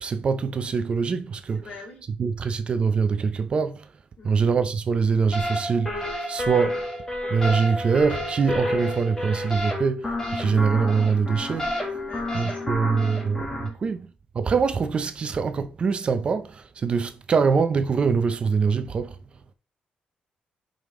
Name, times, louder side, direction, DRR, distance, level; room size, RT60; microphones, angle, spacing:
voice 1, 0.0-1.7 2.1-3.9 4.2-6.8 7.3-11.8 12.3-14.1 14.3-19.2, right 5 dB, 35° right, 0.5 m, -24 dB
voice 2, 1.5-2.1 4.2-4.4 12.0-12.7 13.6-13.8, left 3 dB, 50° left, 2.3 m, -44 dB
sound 1, 5.3-13.7, left 1 dB, 15° left, 1.7 m, -30 dB
5.1 x 5.1 x 3.7 m
cardioid pair, 145°, 3 cm